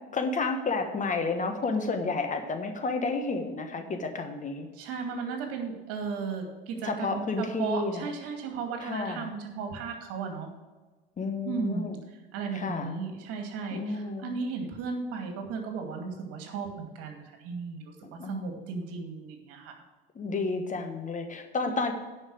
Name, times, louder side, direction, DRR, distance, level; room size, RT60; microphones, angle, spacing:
voice 1, 0.1-4.7 6.8-8.1 8.8-9.3 11.2-12.0 12.5-12.9 13.7-14.3 18.2-18.5 20.1-21.9, left 3 dB, 25° left, 6 dB, 1.3 m, -31 dB
voice 2, 4.7-10.5 11.4-11.9 12.3-18.0 18.2-19.8 21.6-21.8, right 5 dB, 55° right, 3 dB, 2.3 m, -35 dB
10.0 x 5.8 x 6.3 m, 1.3 s
hypercardioid pair, 80°, 29 cm